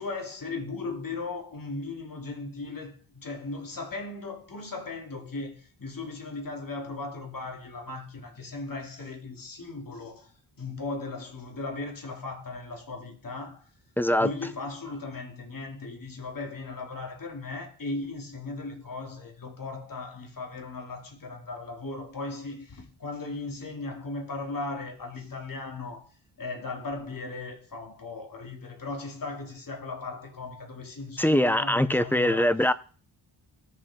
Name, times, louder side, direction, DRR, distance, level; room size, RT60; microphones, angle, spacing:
voice 1, 0.0-10.3 10.6-13.7 14.2-26.1 26.4-32.5, left 3 dB, 45° left, 2.8 m, -37 dB
voice 2, 14.0-14.3 31.2-32.7, left 1 dB, 5° left, 0.5 m, -22 dB
20.0 x 7.1 x 3.7 m
wide cardioid pair, 125°, 46 cm